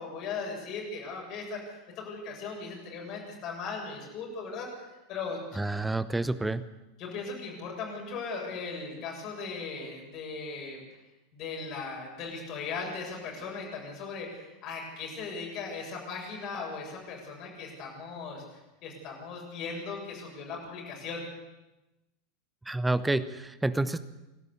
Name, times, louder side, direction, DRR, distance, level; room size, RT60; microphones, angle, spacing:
voice 1, 0.0-5.6 7.0-10.8 11.3-21.2, left 4 dB, 40° left, -1 dB, 7.7 m, -38 dB
voice 2, 5.6-6.6 22.7-24.0, right 2 dB, 10° right, 15 dB, 1.0 m, -28 dB
28.0 x 12.5 x 8.4 m, 0.99 s
figure-of-eight pair, 80°, 0 cm